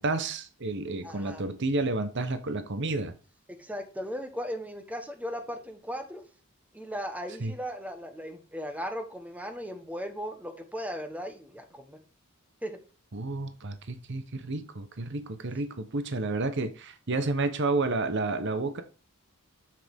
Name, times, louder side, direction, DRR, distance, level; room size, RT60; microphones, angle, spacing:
voice 1, 0.0-3.1 7.4-7.5 13.1-18.8, right 3 dB, 55° right, 0.9 m, -30 dB
voice 2, 1.0-1.4 3.6-6.2 6.7-12.0 12.6-12.8, equal, 5° right, 1.2 m, -37 dB
7.7 x 6.6 x 3.6 m
head